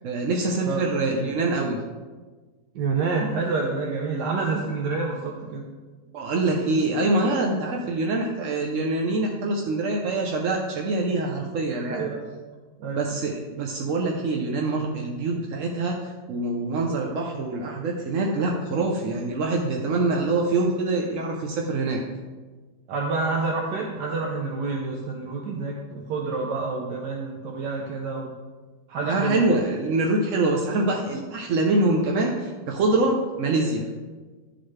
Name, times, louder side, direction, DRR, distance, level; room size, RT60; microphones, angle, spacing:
voice 1, 0.0-1.8 6.1-12.0 12.9-22.0 29.0-33.9, right 2 dB, 60° right, 0 dB, 0.9 m, -25 dB
voice 2, 2.7-5.7 11.9-12.3 12.8-13.2 22.9-28.3 28.9-29.5, right 4 dB, 85° right, -1 dB, 1.4 m, -28 dB
11.5 x 4.0 x 3.2 m, 1.4 s
omnidirectional pair, 1.8 m